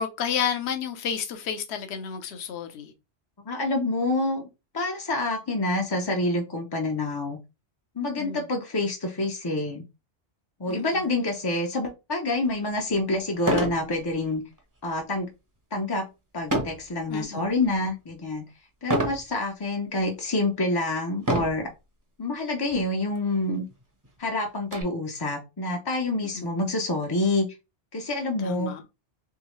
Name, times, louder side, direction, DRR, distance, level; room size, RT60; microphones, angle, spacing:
voice 1, 0.0-2.9 8.2-8.4 10.7-11.0 17.1-17.5 26.1-26.5 28.4-28.8, left 7 dB, 65° left, 1.0 m, -31 dB
voice 2, 3.5-4.5 4.7-7.4 8.0-9.8 10.6-14.4 14.8-15.3 15.7-16.1 16.3-18.4 18.8-21.7 22.2-23.6 24.2-27.5 27.9-28.7, left 2 dB, 30° left, 0.4 m, -27 dB
sound 1, 12.4-12.5 13.4-13.8 14.3-14.6 16.5-16.9 17.5-17.9 18.9-19.2 20.0-20.1 21.2-21.7 22.7-22.8 23.1-23.2 23.7-24.8, right 1 dB, 20° right, 0.7 m, -27 dB
3.6 x 3.1 x 3.1 m
omnidirectional pair, 1.3 m